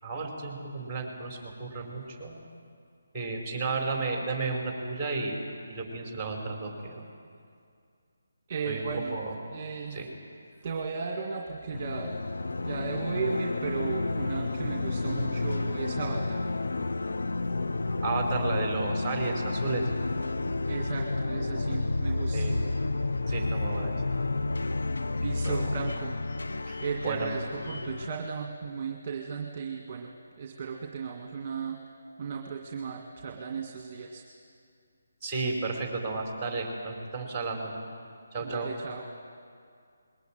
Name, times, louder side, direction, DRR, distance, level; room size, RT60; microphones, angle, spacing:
voice 1, 0.0-2.4 3.1-5.4 5.7-7.0 8.7-9.3 9.9-10.1 18.0-19.9 22.3-22.6 23.3-24.0 25.4-25.7 26.7-27.3 35.2-37.7 38.3-38.7, right 3 dB, 5° right, 0 dB, 5.2 m, -33 dB
voice 2, 8.5-9.1 9.5-10.0 10.6-12.1 12.6-16.4 20.6-22.5 25.2-26.2 26.8-31.8 32.2-34.2 38.4-39.0, right 5 dB, 30° right, 2 dB, 2.0 m, -35 dB
sound 1, 11.7-28.1, left 2 dB, 80° left, 0.6 m, -31 dB
21.5 x 20.0 x 9.2 m, 2.2 s
figure-of-eight pair, 160°, 0 cm